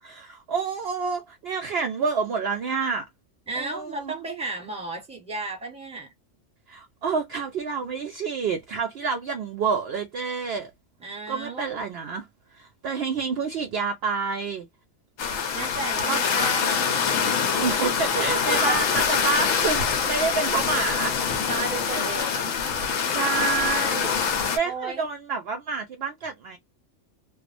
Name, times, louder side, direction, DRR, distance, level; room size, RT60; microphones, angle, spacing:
voice 1, 0.0-3.1 3.6-4.1 6.7-10.7 11.3-14.7 16.0-16.2 17.5-21.2 22.9-26.6, right 5 dB, 65° right, 0.7 m, -28 dB
voice 2, 3.5-6.1 11.0-11.7 15.5-17.0 18.1-18.8 21.4-22.6 22.9-23.3 24.6-25.1, right 3 dB, 5° right, 0.8 m, -33 dB
sound 1, 15.2-24.6, left 6 dB, 85° left, 1.0 m, -25 dB
2.3 x 2.1 x 2.5 m
omnidirectional pair, 1.3 m